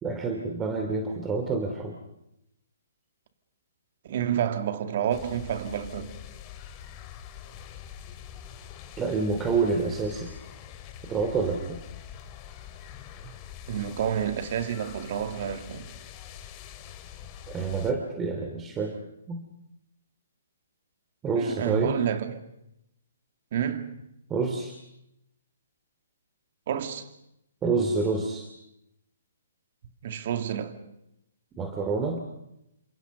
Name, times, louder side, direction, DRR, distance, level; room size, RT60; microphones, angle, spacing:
voice 1, 0.0-2.0 9.0-10.3 11.1-11.8 17.5-19.0 19.3-19.4 21.2-22.0 24.3-24.8 27.6-28.5 31.6-32.2, right 4 dB, 15° right, 2.8 m, -28 dB
voice 2, 4.1-6.1 13.7-15.9 21.4-22.5 23.5-24.0 26.7-27.1 30.0-30.8, right 9 dB, 50° right, 2.5 m, -29 dB
sound 1, 5.1-17.9, left 9 dB, 30° left, 2.9 m, -44 dB
29.0 x 27.0 x 5.5 m
hypercardioid pair, 135°, 0 cm